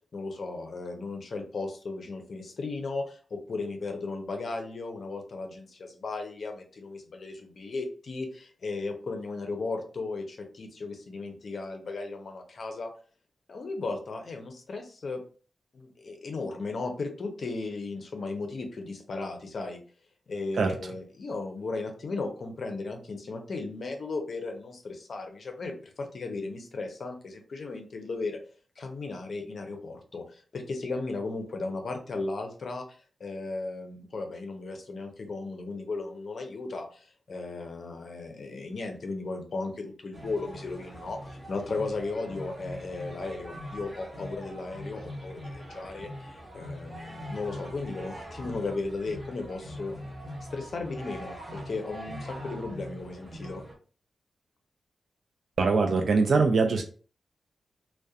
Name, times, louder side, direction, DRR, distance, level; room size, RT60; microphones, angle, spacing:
voice 1, 0.1-12.9 13.5-15.2 15.7-19.8 20.3-28.4 28.8-32.8 33.2-49.9 50.5-53.6, left 3 dB, 50° left, 4 dB, 0.5 m, -36 dB
sound 1, 40.1-53.7, equal, 20° right, 0.7 m, -42 dB
voice 2, 55.6-56.8, right 4 dB, 60° right, 4 dB, 0.3 m, -22 dB
2.3 x 2.1 x 2.6 m, 0.40 s
wide cardioid pair, 150°, 0 cm